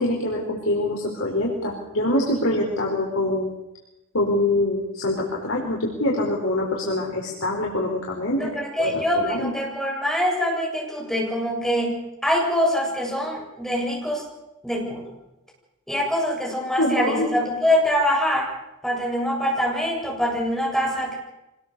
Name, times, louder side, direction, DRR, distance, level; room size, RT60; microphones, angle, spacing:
voice 1, 0.0-3.5 4.1-8.5 8.8-9.5 16.8-17.3, left 1 dB, 70° left, -1 dB, 4.7 m, -24 dB
voice 2, 8.4-12.0 12.2-14.3 14.6-15.1 15.9-18.5 18.8-21.2, equal, ahead, -1 dB, 7.6 m, -24 dB
25.0 x 20.5 x 7.0 m, 0.95 s
head